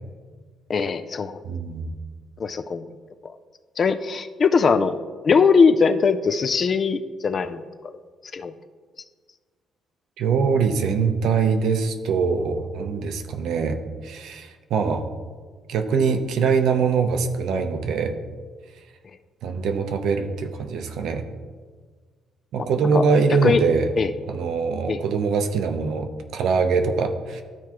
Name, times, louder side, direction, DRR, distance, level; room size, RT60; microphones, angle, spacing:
voice 1, 0.7-1.4 2.4-2.9 3.2-3.3 3.8-5.0 5.2-7.6 8.3-8.5 22.6-22.7 22.9-23.0 23.4-23.6 24.0-24.1 24.9-25.0, left 5 dB, 35° left, 11 dB, 0.3 m, -20 dB
voice 2, 1.5-1.9 10.2-13.8 14.0-15.0 15.7-18.1 19.4-21.2 22.5-23.9 24.3-27.4, right 5 dB, 70° right, 6 dB, 0.7 m, -23 dB
13.0 x 4.6 x 2.9 m, 1.5 s
cardioid pair, 160°, 0 cm